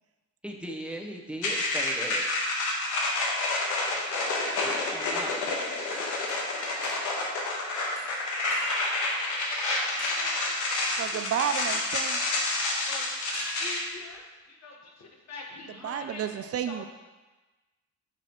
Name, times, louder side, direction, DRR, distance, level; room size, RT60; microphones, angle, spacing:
voice 1, 0.4-2.3 3.9-4.2 4.6-5.5, equal, 5° right, 1 dB, 0.9 m, -38 dB
sound 1, 1.4-13.8, left 2 dB, 85° left, 1.3 m, -29 dB
Chink clink, 5.9-6.4 6.8-7.3 8.0-8.9 10.0-10.4 11.6-11.9 13.3-14.1, right 3 dB, 75° right, 1.8 m, -45 dB
voice 2, 10.2-10.5 10.8-10.9 12.3-12.4 12.8-13.1 13.6-14.2 14.5-16.2 16.7-16.9, left 4 dB, 60° left, 1 dB, 1.4 m, -44 dB
voice 3, 11.0-12.2 15.8-16.8, right 8 dB, 50° right, 9 dB, 0.4 m, -31 dB
8.7 x 4.7 x 3.1 m, 1.2 s
cardioid pair, 90°, 30 cm